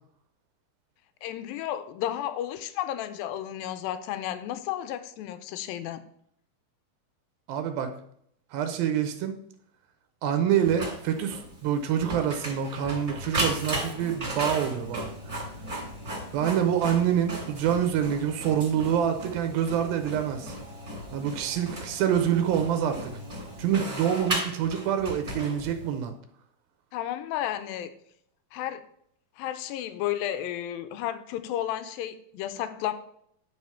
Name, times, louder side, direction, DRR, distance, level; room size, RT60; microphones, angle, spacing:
voice 1, 1.2-6.0 26.9-27.9 28.5-28.8 29.4-32.9, left 11 dB, 85° left, 11 dB, 2.4 m, -32 dB
voice 2, 7.5-7.9 8.5-9.4 10.2-15.1 16.3-20.6 21.1-23.1 23.6-26.1, right 9 dB, 85° right, 7 dB, 2.6 m, -26 dB
Printer, 10.6-26.0, right 1 dB, 20° right, 2.6 m, -36 dB
9.3 x 4.8 x 5.6 m, 0.69 s
omnidirectional pair, 4.2 m